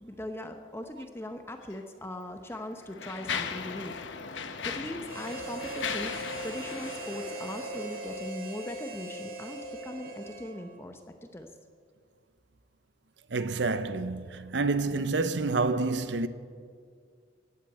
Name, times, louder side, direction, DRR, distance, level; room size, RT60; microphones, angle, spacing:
voice 1, 0.0-3.9 4.6-11.0 11.3-11.5, left 1 dB, 15° left, 0.7 m, -39 dB
Mechanisms, 1.6-1.8 2.5-8.2, left 6 dB, 85° left, 1.0 m, -38 dB
Harmonica, 5.0-10.8, right 2 dB, 50° right, 1.7 m, -40 dB
voice 2, 13.3-16.3, right 3 dB, 70° right, 0.7 m, -28 dB
15.5 x 8.5 x 8.9 m
head